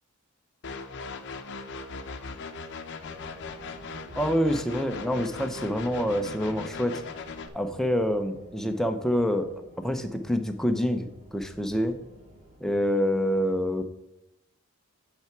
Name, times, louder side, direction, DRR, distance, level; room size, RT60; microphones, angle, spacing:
sound 1, 0.6-7.5, left 4 dB, 55° left, 0.7 m, -39 dB
sound 2, 3.0-12.6, right 1 dB, 30° right, 2.1 m, -51 dB
voice 1, 4.2-7.0 7.5-12.0 12.6-13.8, equal, ahead, 6 dB, 0.6 m, -27 dB
8.8 x 5.9 x 4.5 m, 0.85 s
head